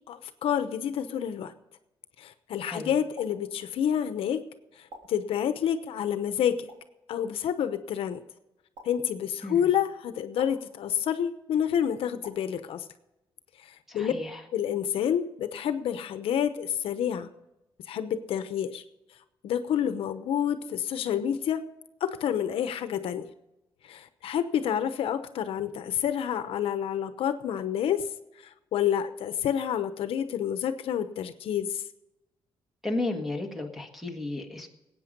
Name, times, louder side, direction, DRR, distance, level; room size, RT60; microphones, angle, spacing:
voice 1, 0.1-1.5 2.2-4.4 5.1-6.7 7.1-8.2 8.8-12.8 13.9-14.1 14.5-17.3 17.9-18.8 19.4-21.6 22.0-23.3 23.8-28.0 28.7-31.8, left 9 dB, 75° left, 10 dB, 0.9 m, -28 dB
sound 1, 3.1-3.3 4.9-5.0 6.7-6.8 8.7-8.9 10.4-10.5 12.2-12.4, right 1 dB, 85° right, 3.5 m, -46 dB
voice 2, 13.9-14.4 32.8-34.7, left 2 dB, ahead, 4 dB, 1.7 m, -33 dB
19.5 x 8.8 x 5.3 m, 0.95 s
cardioid pair, 165°, 10 cm